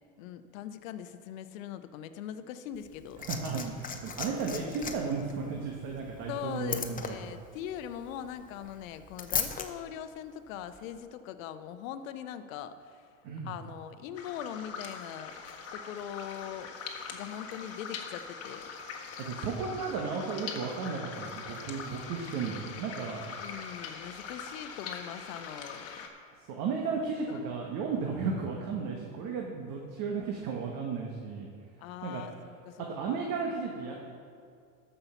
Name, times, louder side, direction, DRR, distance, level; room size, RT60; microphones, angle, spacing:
voice 1, 0.2-3.3 6.3-13.0 13.4-15.4 15.7-18.7 23.3-26.0 27.3-27.4 31.8-32.3 32.7-33.2, left 10 dB, 75° left, 11 dB, 0.8 m, -41 dB
Liquid, 2.7-9.7 10.7-10.9, left 6 dB, 20° left, 0.9 m, -38 dB
voice 2, 3.2-7.2 13.2-13.5 19.2-23.2 26.5-31.5 32.0-32.2 32.9-33.9, right 5 dB, 55° right, 0 dB, 1.4 m, -34 dB
sound 1, 14.1-26.1, left 5 dB, 35° left, 1.4 m, -42 dB
13.0 x 5.7 x 5.7 m, 2.3 s
supercardioid pair, 105°, 40 cm